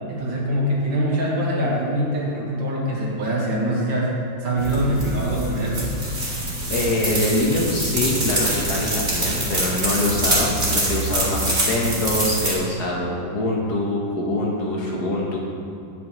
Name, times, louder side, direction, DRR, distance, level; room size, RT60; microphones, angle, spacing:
voice 1, 0.1-6.0, right 1 dB, 70° right, -4 dB, 2.3 m, -23 dB
sound 1, 4.6-12.5, right 1 dB, 30° right, 2.5 m, -25 dB
voice 2, 6.7-15.4, left 1 dB, 55° left, -2 dB, 1.6 m, -24 dB
9.4 x 8.4 x 3.1 m, 2.6 s
omnidirectional pair, 2.2 m